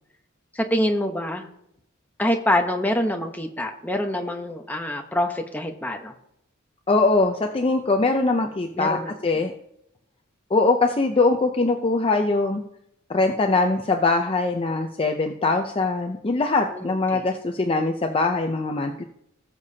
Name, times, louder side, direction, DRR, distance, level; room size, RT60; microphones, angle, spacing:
voice 1, 0.5-1.5 2.2-6.1 8.7-9.1 16.7-17.2, left 1 dB, 10° left, 3 dB, 0.9 m, -25 dB
voice 2, 6.9-9.5 10.5-12.6 13.1-19.0, left 3 dB, 25° left, 4 dB, 0.5 m, -22 dB
18.5 x 6.7 x 2.8 m, 0.78 s
head